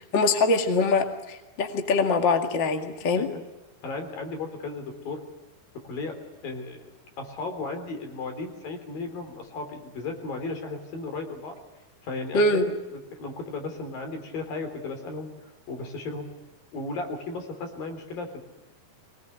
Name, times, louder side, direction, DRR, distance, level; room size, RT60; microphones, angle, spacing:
voice 1, 0.0-3.3 12.3-12.6, left 3 dB, 35° left, 4 dB, 2.1 m, -23 dB
voice 2, 3.2-3.5 3.8-5.2 5.9-6.2 6.4-6.9 7.2-11.6 12.0-15.3 15.7-16.3 16.7-18.4, left 3 dB, 65° left, 5 dB, 5.2 m, -35 dB
23.5 x 20.0 x 9.4 m, 1.1 s
omnidirectional pair, 4.3 m